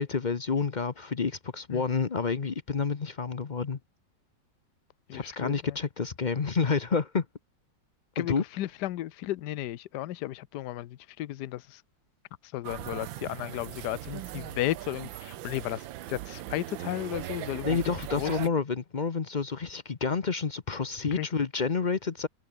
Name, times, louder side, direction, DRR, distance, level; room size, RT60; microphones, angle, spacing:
voice 1, 0.0-3.8 5.1-7.3 8.2-8.4 17.6-22.3, left 5 dB, 40° left, 0.6 m, -29 dB
voice 2, 5.1-5.5 8.2-11.8 12.5-15.8 16.1-17.8 18.2-18.3 21.2-21.3, left 14 dB, 65° left, 1.3 m, -34 dB
sound 1, 12.6-18.5, right 14 dB, 90° right, 1.5 m, -39 dB
omnidirectional pair, 2.1 m